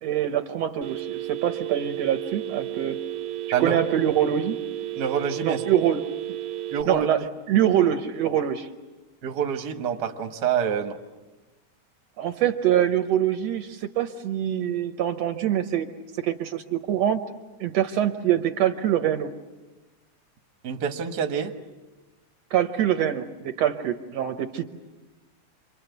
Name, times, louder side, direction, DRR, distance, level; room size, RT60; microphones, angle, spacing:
voice 1, 0.0-3.0 3.6-4.6 5.4-6.1 6.9-7.2 7.5-8.7 12.2-15.9 16.2-17.2 17.6-19.3 22.5-24.6, right 10 dB, 70° right, 7 dB, 2.1 m, -24 dB
Telephone, 0.8-6.8, right 13 dB, 85° right, 2.6 m, -33 dB
voice 2, 5.0-5.6 6.7-7.3 9.2-11.0 20.6-21.5, right 7 dB, 45° right, 5 dB, 1.6 m, -27 dB
28.0 x 23.5 x 8.1 m, 1.1 s
omnidirectional pair, 3.3 m